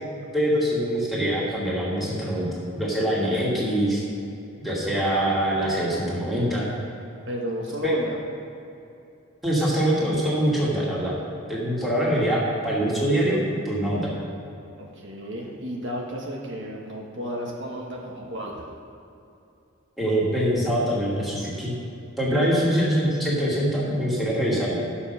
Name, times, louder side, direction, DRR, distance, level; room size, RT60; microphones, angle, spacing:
voice 1, 0.3-2.5 2.7-4.0 4.6-6.7 7.8-7.9 9.4-11.1 11.5-14.1 20.0-21.7 22.2-24.8, equal, ahead, -7 dB, 2.4 m, -24 dB
voice 2, 7.3-8.2 14.8-18.6, equal, 60° right, -2 dB, 1.4 m, -33 dB
12.5 x 7.2 x 5.6 m, 2.7 s
head